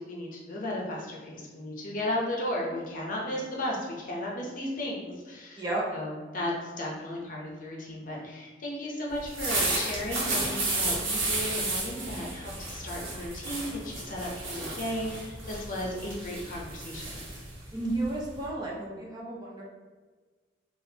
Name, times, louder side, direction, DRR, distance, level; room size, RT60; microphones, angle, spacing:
voice 1, 0.0-5.6 5.9-17.2, left 1 dB, 45° left, -2 dB, 0.7 m, -35 dB
sound 1, 9.2-18.5, right 2 dB, 85° right, 1.1 m, -32 dB
voice 2, 17.7-19.6, right 2 dB, 20° right, -4 dB, 0.7 m, -32 dB
4.0 x 2.5 x 2.8 m, 1.4 s
head